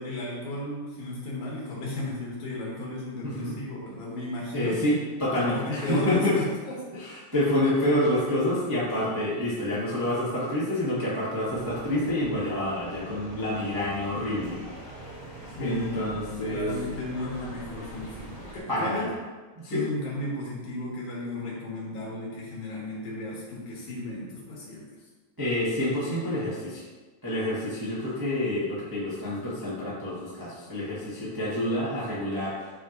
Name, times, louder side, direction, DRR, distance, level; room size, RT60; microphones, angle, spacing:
voice 1, 0.0-4.9 5.4-6.8 15.6-19.1 19.7-24.9, left 1 dB, 75° left, -4 dB, 3.1 m, -34 dB
voice 2, 3.2-3.5 4.5-6.4 6.9-14.9 15.6-16.7 18.7-19.1 19.5-19.8 25.4-26.8 27.2-32.8, left 1 dB, 20° right, -9 dB, 0.6 m, -28 dB
Piccadilly Circus Ambience, 11.5-18.6, right 2 dB, 30° left, 0.6 m, -43 dB
8.9 x 3.3 x 3.9 m, 1.3 s
omnidirectional pair, 3.5 m